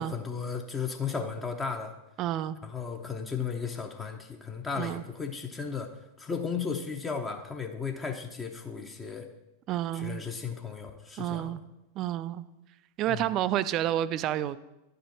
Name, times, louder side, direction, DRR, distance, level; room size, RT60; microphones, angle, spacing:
voice 1, 0.0-1.9 2.6-5.9 6.2-9.3 9.9-11.6 13.1-13.4, left 5 dB, 15° left, 3 dB, 0.8 m, -35 dB
voice 2, 2.2-2.6 4.8-5.0 9.7-10.2 11.2-11.6 12.0-12.5 13.0-14.6, right 12 dB, 35° right, 14 dB, 0.4 m, -30 dB
10.5 x 5.1 x 4.5 m, 0.93 s
figure-of-eight pair, 90°, 0 cm